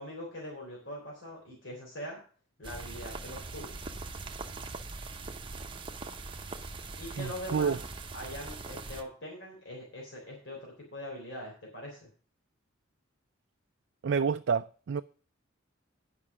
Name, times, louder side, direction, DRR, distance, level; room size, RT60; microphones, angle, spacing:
voice 1, 0.0-2.2 2.6-3.8 7.0-7.8 8.1-12.1, left 1 dB, 65° left, 3.5 m, -42 dB
sound 1, 2.6-9.0, right 3 dB, 25° right, 0.8 m, -41 dB
voice 2, 7.2-7.8 14.0-15.0, right 6 dB, 60° right, 0.4 m, -29 dB
9.7 x 5.7 x 6.0 m
head